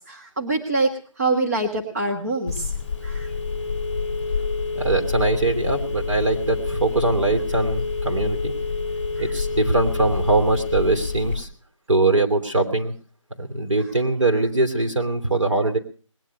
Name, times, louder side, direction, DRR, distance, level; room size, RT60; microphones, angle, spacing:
voice 1, 0.1-0.9 1.2-2.7 3.0-3.3 9.2-9.3, right 2 dB, 30° right, 0 dB, 1.5 m, -24 dB
Telephone, 2.5-11.4, left 4 dB, 20° left, 2.2 m, -27 dB
voice 2, 4.7-8.5 9.2-11.5 11.9-12.9 13.4-15.8, right 2 dB, 65° right, 4 dB, 2.8 m, -22 dB
20.0 x 9.5 x 6.6 m, 0.41 s
figure-of-eight pair, 175°, 17 cm